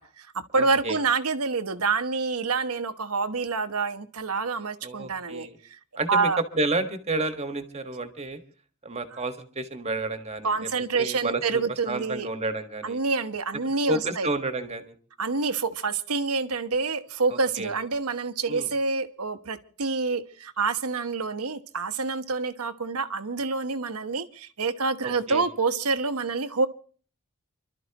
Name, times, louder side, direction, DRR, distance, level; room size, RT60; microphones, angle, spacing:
voice 1, 0.0-5.5 6.1-6.4 10.4-12.3 12.8-14.3 15.2-26.7, right 4 dB, 80° right, 1.2 m, -27 dB
voice 2, 0.6-1.0 4.8-5.6 6.0-6.3 6.5-8.4 8.8-10.5 11.0-13.0 13.9-14.9 17.3-17.7 18.5-18.7 25.0-25.4, right 2 dB, 30° right, 1.6 m, -30 dB
29.5 x 12.5 x 3.0 m
head